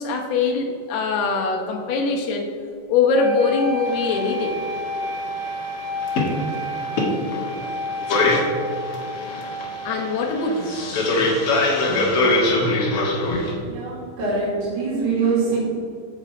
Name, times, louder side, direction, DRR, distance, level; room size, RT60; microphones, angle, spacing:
voice 1, 0.0-2.5 2.9-4.5 9.8-10.8, left 4 dB, 75° left, 1 dB, 3.1 m, -22 dB
sound 1, 3.1-11.2, equal, 40° right, 2.3 m, -31 dB
sound 2, 3.9-13.5, left 2 dB, 55° left, 1.7 m, -23 dB
voice 2, 13.6-15.6, right 4 dB, 75° right, -8 dB, 4.7 m, -24 dB
15.0 x 5.3 x 4.4 m, 2.4 s
omnidirectional pair, 4.7 m